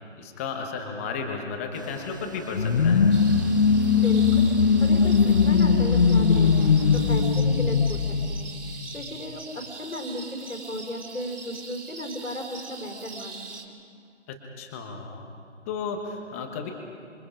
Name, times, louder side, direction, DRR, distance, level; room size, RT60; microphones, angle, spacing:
voice 1, 0.2-3.0 14.3-15.3 15.7-16.7, left 5 dB, 10° left, 4 dB, 1.1 m, -34 dB
sound 1, 1.7-7.2, equal, 15° right, 0.5 m, -43 dB
sound 2, 2.5-9.0, left 5 dB, 45° left, 1.0 m, -20 dB
sound 3, 3.1-13.6, right 4 dB, 70° right, 2.9 m, -42 dB
voice 2, 4.0-8.0 8.3-8.5 8.9-13.8, left 1 dB, 85° left, 3 dB, 4.4 m, -35 dB
26.5 x 25.0 x 5.1 m, 2.5 s
figure-of-eight pair, 155°, 37 cm